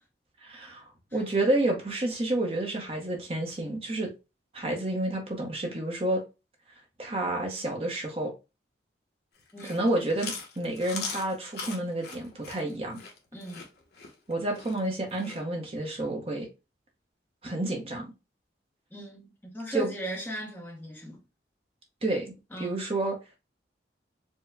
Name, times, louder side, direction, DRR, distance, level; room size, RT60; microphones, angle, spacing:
voice 1, 0.4-4.1 4.5-6.2 7.0-8.3 9.6-13.0 14.3-16.5 17.4-18.1 19.7-19.9 22.0-23.2, right 1 dB, 30° right, 0.7 m, -30 dB
Chewing mastication, 9.4-15.4, left 5 dB, 60° left, 0.9 m, -40 dB
voice 2, 13.3-13.7 18.9-21.2 22.5-22.8, equal, 10° left, 0.7 m, -38 dB
4.5 x 2.1 x 3.3 m
head